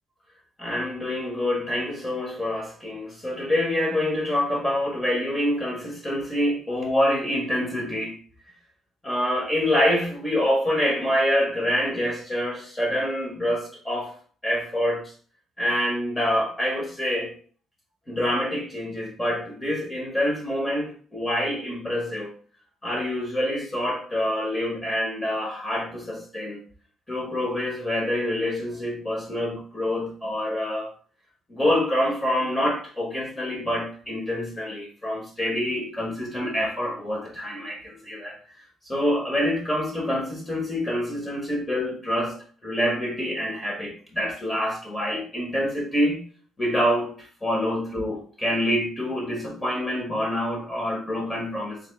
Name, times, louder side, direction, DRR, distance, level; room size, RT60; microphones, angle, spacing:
voice 1, 0.6-8.2 9.0-14.1 14.4-15.1 15.6-17.3 18.1-22.3 22.8-26.6 27.1-30.9 31.5-38.4 38.8-42.4 42.6-46.2 46.6-51.8, left 1 dB, 20° left, -1 dB, 1.5 m, -26 dB
3.6 x 3.2 x 3.4 m, 0.43 s
cardioid pair, 90°, 0 cm